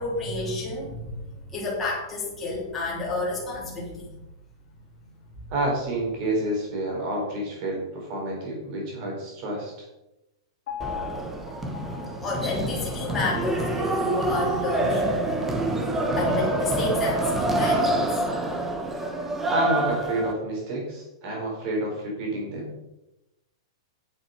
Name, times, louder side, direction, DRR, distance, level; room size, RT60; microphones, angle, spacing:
voice 1, 0.0-4.1 5.4-5.5 11.9-15.5 16.1-18.3, left 2 dB, 10° left, -7 dB, 3.1 m, -30 dB
voice 2, 5.5-9.7 19.5-22.7, right 1 dB, 30° right, -1 dB, 4.2 m, -29 dB
Piano, 10.7-14.8 15.2-15.3, left 9 dB, 40° left, 2.7 m, -40 dB
sound 1, 10.8-20.3, right 1 dB, 10° right, 1.0 m, -26 dB
8.7 x 7.8 x 5.8 m, 0.94 s
supercardioid pair, 175°, 3 cm